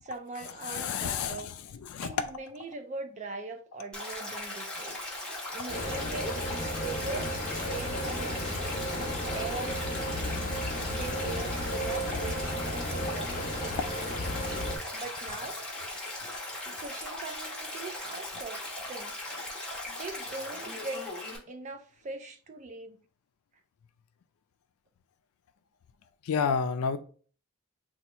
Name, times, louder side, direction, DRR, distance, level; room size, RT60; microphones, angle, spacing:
voice 1, 0.0-1.5 2.0-5.0 5.5-8.6 8.9-13.8 14.7-15.6 16.7-19.1 19.9-21.1 21.5-23.0, right 3 dB, 35° right, 0.3 m, -41 dB
voice 2, 0.6-2.3 26.2-27.0, left 6 dB, 80° left, 0.4 m, -30 dB
Stream, 3.9-21.4, left 1 dB, 5° left, 0.9 m, -39 dB
sound 1, 5.7-14.8, equal, 40° left, 0.8 m, -33 dB
2.8 x 2.3 x 4.2 m
head